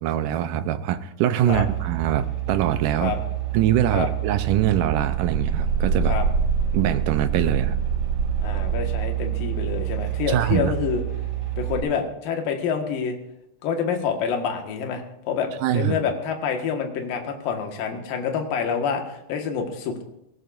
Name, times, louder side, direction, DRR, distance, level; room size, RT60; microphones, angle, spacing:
voice 1, 0.0-3.1 3.5-6.2 6.7-7.8 10.3-10.7 15.6-16.0, right 11 dB, 75° right, 10 dB, 2.1 m, -23 dB
sound 1, 1.5-11.8, right 8 dB, 55° right, 6.4 m, -26 dB
voice 2, 8.4-11.0 11.6-13.2 13.6-20.0, left 6 dB, 70° left, 3 dB, 3.3 m, -27 dB
19.0 x 17.5 x 2.6 m, 0.81 s
omnidirectional pair, 4.4 m